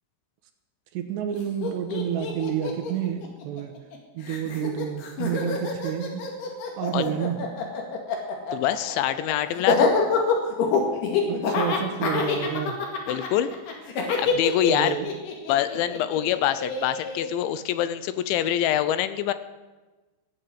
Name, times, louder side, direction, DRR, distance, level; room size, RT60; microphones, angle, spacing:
voice 1, 0.9-3.7 4.2-6.2 6.8-7.4 11.3-12.8 14.6-15.1, right 9 dB, 75° right, 7 dB, 3.0 m, -29 dB
Laughter, 1.3-1.4 1.6-4.0 4.2-17.3, left 5 dB, 65° left, 3.8 m, -26 dB
voice 2, 8.5-9.9 13.1-13.5 14.2-15.0 15.5-19.3, left 11 dB, 80° left, 13 dB, 3.0 m, -25 dB
15.5 x 9.0 x 7.8 m, 1.2 s
omnidirectional pair, 5.4 m